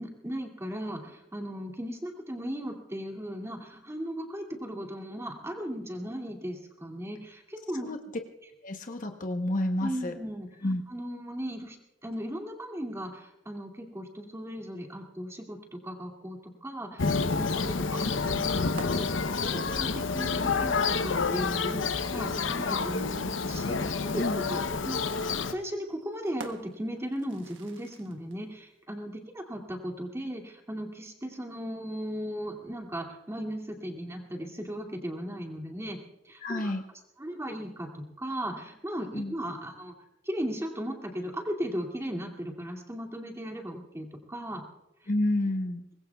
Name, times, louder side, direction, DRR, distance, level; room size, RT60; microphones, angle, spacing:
voice 1, 0.0-7.9 9.8-10.5 10.9-11.8 12.0-25.0 25.4-36.0 36.2-36.7 37.2-39.9 40.2-44.6 45.0-45.1, equal, 15° right, 2 dB, 2.4 m, -37 dB
voice 2, 8.6-10.1 10.6-10.8 24.2-24.4 36.4-36.8 39.1-39.4 45.1-45.8, left 1 dB, 45° left, 5 dB, 1.0 m, -29 dB
Thunder, 17.0-25.5, left 4 dB, 85° left, 0.8 m, -29 dB
sound 1, 17.2-20.9 22.3-22.4 24.5-28.4, right 3 dB, 80° right, 1.4 m, -50 dB
24.5 x 20.5 x 2.4 m, 0.90 s
head